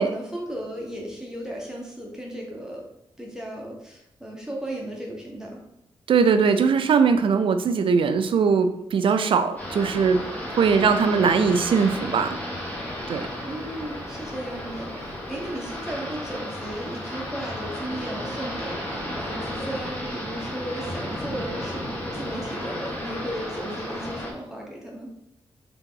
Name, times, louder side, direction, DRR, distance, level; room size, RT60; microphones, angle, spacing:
voice 1, 0.0-2.8 3.2-5.6 13.4-25.1, right 1 dB, 5° right, -3 dB, 1.1 m, -35 dB
voice 2, 6.1-10.2 10.6-12.4 13.1-13.2, right 5 dB, 65° right, 8 dB, 0.4 m, -20 dB
sound 1, 9.6-24.3, equal, 15° left, 1.4 m, -33 dB
3.6 x 2.9 x 3.7 m, 0.83 s
cardioid pair, 70°, 10 cm